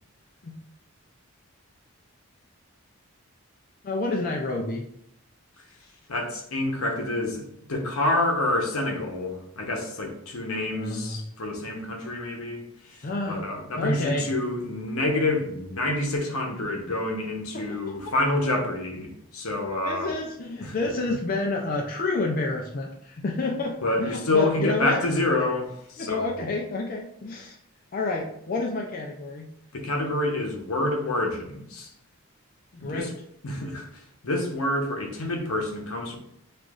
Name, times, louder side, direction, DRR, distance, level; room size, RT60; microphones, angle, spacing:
voice 1, 3.8-4.9 10.7-11.2 13.0-13.4 13.8-14.3 17.5-17.8 19.8-25.0 26.0-27.6 27.9-29.5 32.7-33.1, left 2 dB, 40° left, 0 dB, 0.4 m, -29 dB
voice 2, 6.1-7.4 7.7-20.1 20.6-20.8 23.8-26.3 29.7-31.9 32.8-33.1 33.4-33.9 34.2-36.2, left 2 dB, 75° left, 2 dB, 0.9 m, -27 dB
6.5 x 2.5 x 2.4 m, 0.74 s
head